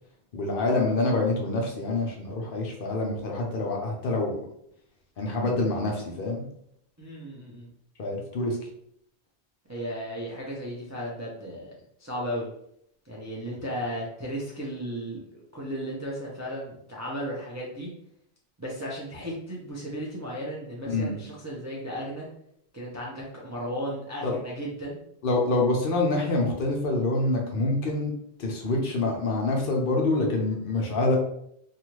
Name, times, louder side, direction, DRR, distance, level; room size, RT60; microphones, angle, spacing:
voice 1, 0.3-4.4 5.2-6.4 8.0-8.6 20.9-21.2 24.2-24.4 25.2-28.1 28.4-31.2, left 2 dB, 60° left, 1 dB, 0.8 m, -26 dB
voice 2, 7.0-7.7 9.7-11.7 12.0-12.5 13.1-17.9 18.6-22.3 22.7-25.0, equal, 25° right, -4 dB, 0.3 m, -35 dB
2.6 x 2.3 x 3.0 m, 0.72 s
omnidirectional pair, 1.1 m